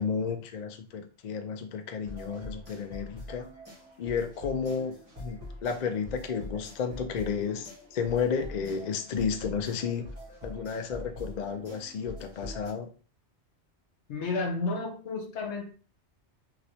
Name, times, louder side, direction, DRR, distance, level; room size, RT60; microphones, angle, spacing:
voice 1, 0.0-3.5 4.0-10.1 10.4-12.9, left 6 dB, 60° left, 0.5 m, -32 dB
sound 1, 2.0-12.7, left 1 dB, 30° right, 1.3 m, -44 dB
voice 2, 14.1-15.7, left 3 dB, 75° left, 1.1 m, -32 dB
3.0 x 2.9 x 2.7 m
omnidirectional pair, 1.2 m